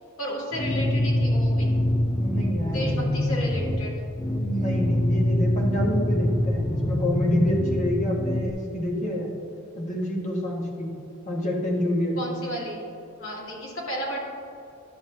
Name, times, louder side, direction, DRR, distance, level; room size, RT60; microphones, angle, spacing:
voice 1, 0.2-1.7 2.7-4.0 12.2-12.8 13.2-14.2, equal, 75° left, -4 dB, 1.9 m, -32 dB
sound 1, 0.5-8.5, left 1 dB, 10° left, 0.4 m, -25 dB
voice 2, 2.2-2.9 4.4-9.3 9.8-11.0 11.2-12.2, equal, 35° left, -2 dB, 1.4 m, -27 dB
10.5 x 7.1 x 2.7 m, 2.8 s
head